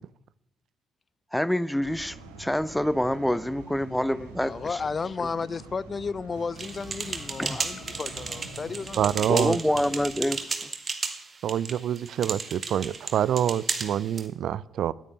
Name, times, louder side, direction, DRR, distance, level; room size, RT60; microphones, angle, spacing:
voice 1, 1.3-4.8 7.4-7.7 9.3-10.4, equal, 5° left, 0.7 m, -26 dB
sound 1, 1.8-10.4, right 3 dB, 85° right, 1.4 m, -46 dB
voice 2, 4.4-9.6, left 5 dB, 40° left, 0.5 m, -33 dB
sound 2, 6.1-10.2, left 1 dB, 75° left, 2.6 m, -49 dB
sound 3, 6.6-14.3, right 4 dB, 40° right, 1.9 m, -34 dB
voice 3, 9.0-9.6 11.4-14.9, right 10 dB, 65° right, 0.4 m, -26 dB
9.8 x 9.5 x 9.9 m
hypercardioid pair, 45°, 0 cm